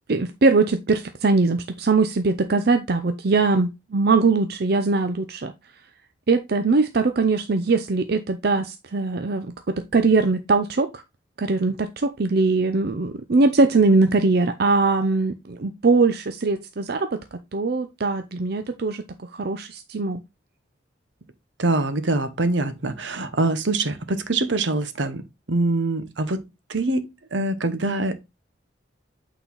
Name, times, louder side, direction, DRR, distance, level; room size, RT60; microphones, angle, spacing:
voice 1, 0.1-5.5 6.3-11.0 11.4-17.2 17.5-19.0 19.4-20.2, right 3 dB, 55° right, 0.6 m, -21 dB
voice 2, 21.6-26.4 26.7-28.3, right 2 dB, 75° right, 1.0 m, -24 dB
8.5 x 4.1 x 3.9 m
head